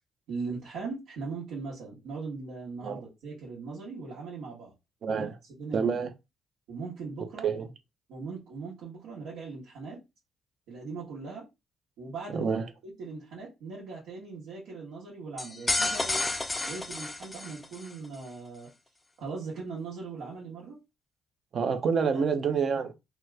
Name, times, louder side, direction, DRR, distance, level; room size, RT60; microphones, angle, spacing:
voice 1, 0.3-4.7 5.1-5.3 5.6-6.0 6.7-7.5 8.1-10.0 10.7-11.5 12.0-12.5 12.8-16.2 16.7-18.7 19.2-20.8 22.1-22.2, right 4 dB, 90° right, 1.1 m, -39 dB
voice 2, 5.0-5.4 5.7-6.1 7.4-7.7 12.3-12.7 21.5-22.9, right 6 dB, 55° right, 0.6 m, -27 dB
sound 1, 15.4-17.9, left 2 dB, 20° left, 0.4 m, -31 dB
2.9 x 2.3 x 3.2 m
cardioid pair, 90°, 0 cm